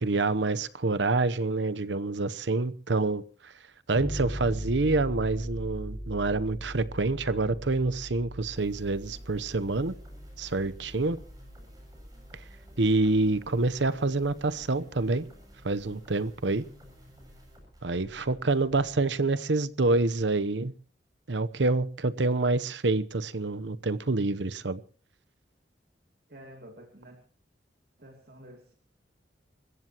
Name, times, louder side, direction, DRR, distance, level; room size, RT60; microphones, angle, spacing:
voice 1, 0.0-3.5 3.9-9.9 10.4-11.2 12.8-15.2 15.6-16.6 17.8-20.7 21.3-24.8, right 3 dB, 80° right, 0.9 m, -27 dB
sound 1, 3.9-13.2, equal, 10° left, 7.3 m, -40 dB
sound 2, 8.6-19.1, equal, 20° right, 7.5 m, -53 dB
voice 2, 26.3-27.2 28.0-28.7, right 1 dB, 55° right, 2.9 m, -50 dB
28.0 x 15.5 x 3.0 m
head